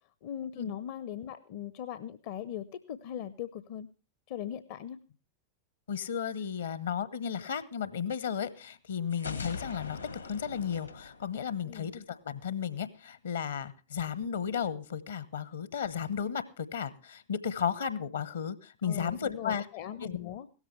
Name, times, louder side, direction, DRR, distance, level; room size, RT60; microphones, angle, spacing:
voice 1, 0.2-3.9 4.3-5.0 11.6-11.9 18.8-20.5, left 10 dB, 50° left, 14 dB, 0.6 m, -39 dB
voice 2, 5.9-10.0 10.2-19.7 20.0-20.1, left 7 dB, 65° left, 17 dB, 1.0 m, -34 dB
sound 1, 9.1-12.0, left 4 dB, 85° left, 1.7 m, -41 dB
16.5 x 13.5 x 3.2 m, 0.34 s
figure-of-eight pair, 90°, 0 cm